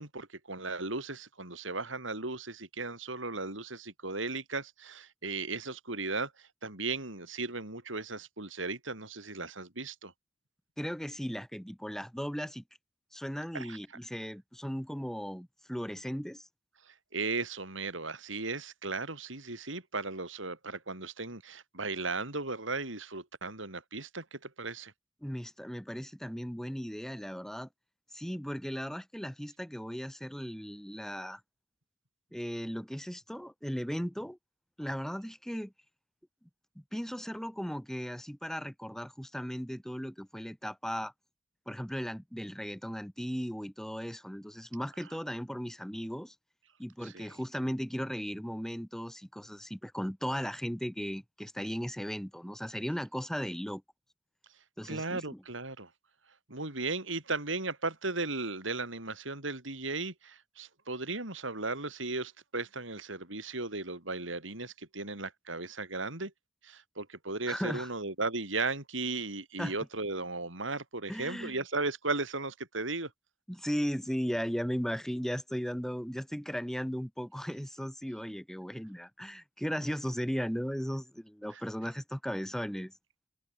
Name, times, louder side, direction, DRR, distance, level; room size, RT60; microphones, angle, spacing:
voice 1, 0.0-10.1 13.5-13.8 16.9-24.9 47.0-47.3 54.9-55.9 56.5-66.3 66.6-73.1 81.5-81.6, right 3 dB, 75° right, 5.8 m, -36 dB
voice 2, 10.8-12.6 13.1-16.5 25.2-27.7 28.1-31.4 32.3-34.4 34.8-35.7 36.9-41.1 41.7-46.3 46.8-53.8 54.8-55.4 67.5-67.9 69.6-69.8 71.1-71.6 73.5-82.9, equal, ahead, 1.7 m, -36 dB
open air
head